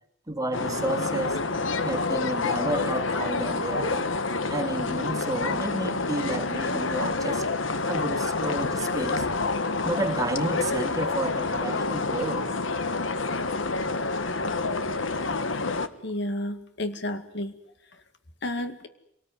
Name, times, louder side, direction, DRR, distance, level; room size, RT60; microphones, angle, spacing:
voice 1, 0.3-1.4 1.8-4.1 4.5-7.4 7.9-9.3 9.8-12.5, right 2 dB, 20° right, 4 dB, 3.0 m, -31 dB
sound 1, 0.5-15.9, left 3 dB, 90° left, 1.5 m, -28 dB
voice 2, 16.0-17.5 18.4-18.9, left 1 dB, 60° left, 9 dB, 2.2 m, -31 dB
26.0 x 19.5 x 9.8 m, 0.78 s
head